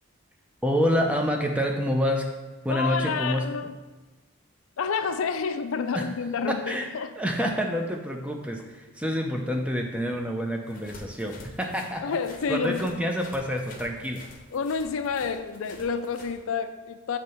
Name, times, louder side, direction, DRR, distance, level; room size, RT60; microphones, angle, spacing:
voice 1, 0.6-2.3 2.6-3.5 5.9-6.1 6.5-12.2 12.5-14.2, equal, 5° right, 2 dB, 0.5 m, -27 dB
voice 2, 2.7-3.7 4.8-7.1 12.0-12.9 14.5-17.2, left 5 dB, 70° left, 9 dB, 0.4 m, -29 dB
sound 1, 10.7-16.4, left 2 dB, 40° left, 0.7 m, -48 dB
7.3 x 3.2 x 5.4 m, 1.1 s
head